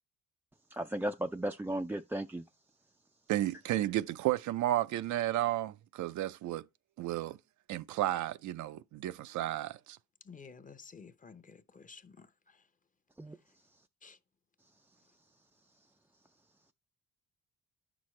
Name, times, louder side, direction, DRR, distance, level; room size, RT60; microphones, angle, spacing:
voice 1, 0.7-2.4 13.2-13.4, right 1 dB, 5° right, 0.3 m, -35 dB
voice 2, 3.3-6.6 7.0-7.4 7.7-10.0, right 14 dB, 75° right, 0.5 m, -32 dB
voice 3, 10.2-12.6 14.0-14.2, left 5 dB, 25° left, 0.8 m, -53 dB
9.6 x 6.1 x 3.1 m
cardioid pair, 90°, 30 cm